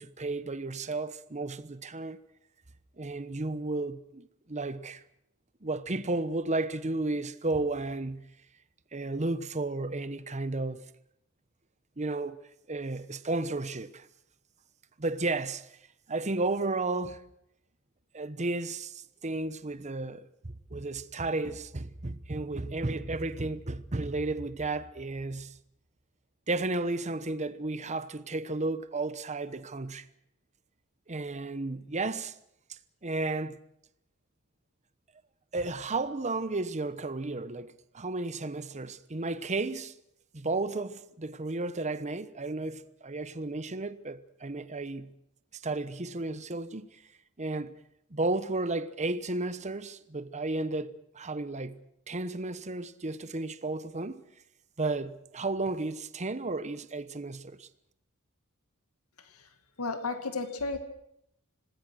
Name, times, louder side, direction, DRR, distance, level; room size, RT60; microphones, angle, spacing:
voice 1, 0.0-2.2 3.0-5.0 5.6-8.3 8.9-10.8 12.0-12.4 12.7-14.1 15.0-15.7 16.1-17.2 18.1-20.3 20.7-25.6 26.5-30.1 31.1-32.4 32.7-33.6 35.5-39.9 40.3-45.1 45.5-47.0 47.4-47.7 48.1-54.2 54.8-57.7, right 2 dB, 30° right, 1.0 m, -33 dB
voice 2, 59.2-59.5 59.8-60.8, left 3 dB, 75° left, 2.3 m, -33 dB
26.5 x 19.5 x 6.4 m
head